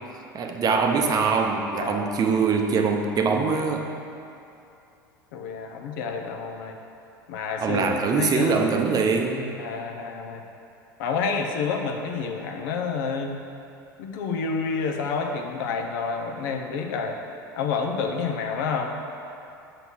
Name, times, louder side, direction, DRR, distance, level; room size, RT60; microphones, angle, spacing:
voice 1, 0.3-3.8 7.6-9.5, right 5 dB, 35° right, 3 dB, 0.7 m, -23 dB
voice 2, 1.8-2.1 5.3-6.8 7.3-8.5 9.6-10.4 11.0-13.3 14.0-17.2 17.6-18.9, left 5 dB, 65° left, 2 dB, 0.7 m, -29 dB
5.8 x 3.9 x 6.2 m, 2.7 s
hypercardioid pair, 80°, 11 cm